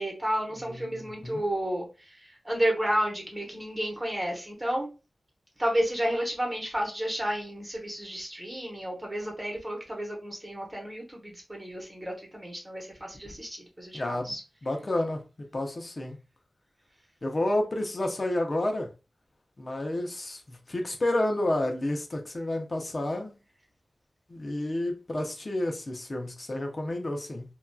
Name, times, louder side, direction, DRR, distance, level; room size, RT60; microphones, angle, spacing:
voice 1, 0.0-1.9 2.4-4.9 5.6-14.4, equal, 15° right, 1.0 m, -31 dB
voice 2, 0.6-1.4 13.9-14.4 14.6-15.2 15.5-16.2 17.2-18.9 19.6-23.4 24.3-27.4, left 1 dB, 45° left, 0.6 m, -30 dB
2.8 x 2.3 x 2.2 m
wide cardioid pair, 75°, 0 cm